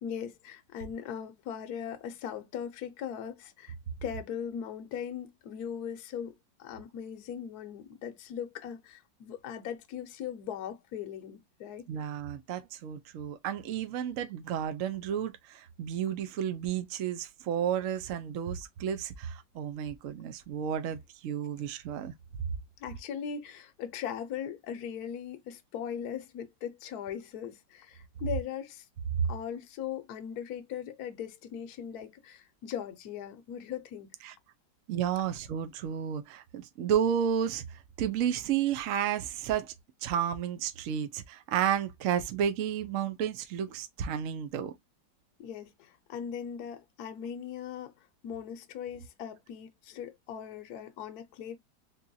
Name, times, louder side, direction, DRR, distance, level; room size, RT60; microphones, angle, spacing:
voice 1, 0.0-3.7 4.0-11.8 22.8-28.9 29.3-34.1 45.4-47.9 48.2-51.6, left 8 dB, 65° left, 1.1 m, -39 dB
voice 2, 11.9-22.1 34.2-34.3 34.9-39.7 40.0-44.7, right 9 dB, 70° right, 0.7 m, -32 dB
3.8 x 2.9 x 2.5 m
omnidirectional pair, 2.0 m